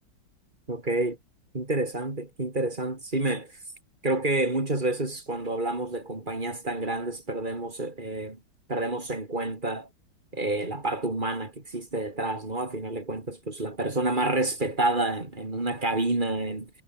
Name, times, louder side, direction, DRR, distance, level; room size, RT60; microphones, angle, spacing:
voice 1, 0.7-1.2 1.5-3.6 4.0-8.4 8.7-9.9 10.3-16.7, right 2 dB, 25° right, 3.4 m, -29 dB
omnidirectional pair, 2.1 m